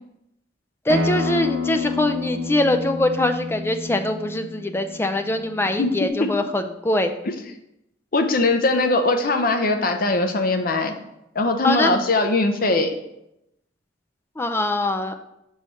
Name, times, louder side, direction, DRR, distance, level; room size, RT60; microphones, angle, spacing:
voice 1, 0.9-7.2 11.6-12.0 14.4-15.1, left 1 dB, 10° left, 7 dB, 0.3 m, -23 dB
Acoustic guitar, 0.9-6.1, left 3 dB, 85° right, 0.8 m, -29 dB
voice 2, 8.1-11.0 11.3-12.9, left 2 dB, 50° left, 6 dB, 0.6 m, -20 dB
6.2 x 3.2 x 5.4 m, 0.85 s
head